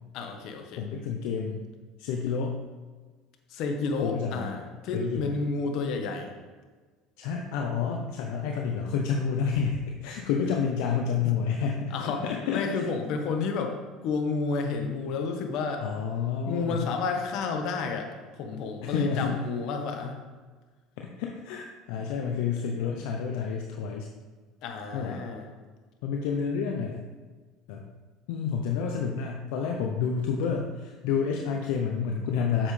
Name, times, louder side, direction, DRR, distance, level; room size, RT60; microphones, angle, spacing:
voice 1, 0.1-0.8 3.5-6.3 10.7-10.8 11.2-11.3 11.9-12.2 12.5-13.8 14.0-15.9 16.4-20.2 24.6-25.5, left 4 dB, 65° left, 4 dB, 1.3 m, -31 dB
voice 2, 0.8-1.7 2.0-2.6 4.0-4.4 4.9-5.4 7.2-12.8 15.8-16.9 18.8-19.3 21.0-24.1 24.9-25.2 26.0-27.0 27.7-27.9 28.3-32.7, left 6 dB, 80° left, 1 dB, 0.8 m, -29 dB
8.9 x 7.2 x 3.4 m, 1.4 s
supercardioid pair, 110°, 0 cm